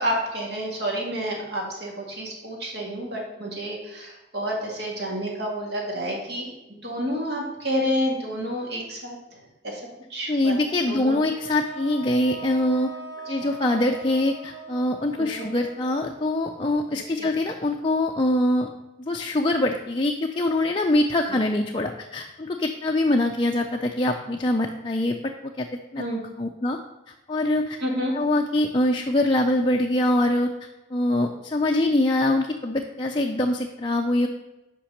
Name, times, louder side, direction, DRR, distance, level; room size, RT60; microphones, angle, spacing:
voice 1, 0.0-9.8 10.1-10.5 10.9-11.2 13.4-13.5 15.2-15.5 17.2-17.3 21.3-21.4 26.0-26.2 27.8-28.1, equal, 55° right, -1 dB, 2.1 m, -29 dB
voice 2, 10.3-13.0 13.3-18.7 19.0-25.7 25.9-26.0 26.4-26.8 27.1-27.8 28.1-30.5 30.9-34.3, left 1 dB, 25° left, 1 dB, 0.4 m, -24 dB
sound 1, 11.4-17.5, right 4 dB, 15° right, 2.0 m, -41 dB
5.9 x 5.2 x 6.4 m, 0.98 s
head